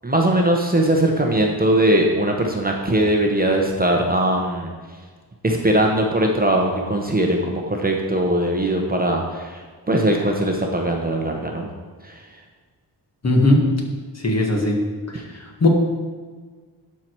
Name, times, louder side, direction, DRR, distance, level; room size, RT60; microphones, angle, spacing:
voice 1, 0.0-4.7 5.4-9.6 9.9-11.7 12.0-12.2, right 1 dB, 20° right, 1 dB, 0.9 m, -20 dB
voice 2, 13.2-13.6 14.2-14.8 15.1-15.2 15.6-15.7, left 1 dB, 35° left, 0 dB, 1.6 m, -17 dB
11.5 x 4.7 x 4.6 m, 1.5 s
wide cardioid pair, 110°, 42 cm